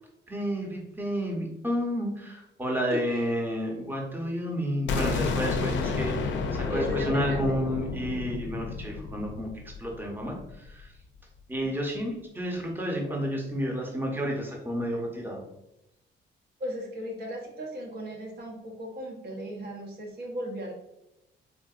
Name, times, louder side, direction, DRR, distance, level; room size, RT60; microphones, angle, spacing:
voice 1, 0.3-10.9 11.5-15.4, equal, 10° right, 0 dB, 0.8 m, -31 dB
sound 1, 4.9-10.7, left 4 dB, 65° left, 0.5 m, -31 dB
voice 2, 6.7-7.5 16.6-20.7, equal, 55° right, 0 dB, 0.7 m, -36 dB
3.6 x 2.5 x 2.4 m, 0.88 s
cardioid pair, 90°, 20 cm